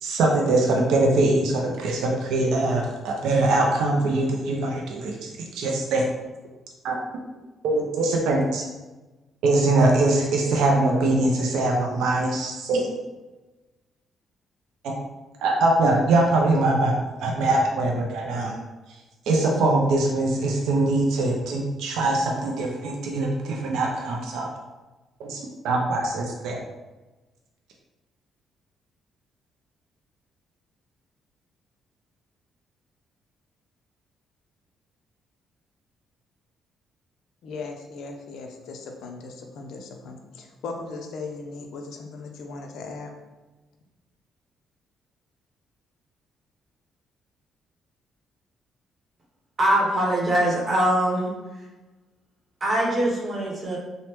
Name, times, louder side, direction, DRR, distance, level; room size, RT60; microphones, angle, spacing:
voice 1, 0.0-6.1 6.8-7.0 7.6-8.6 9.4-12.9 14.8-14.9 15.4-16.9 17.2-18.6 19.3-24.5 25.2-25.4 25.6-26.6, right 2 dB, 85° right, 0 dB, 0.4 m, -22 dB
voice 2, 37.4-43.1, left 3 dB, 80° left, 3 dB, 0.4 m, -38 dB
voice 3, 49.6-51.3 52.6-53.8, right 1 dB, 40° right, -3 dB, 0.8 m, -22 dB
3.1 x 2.0 x 2.9 m, 1.1 s
cardioid pair, 90°, 0 cm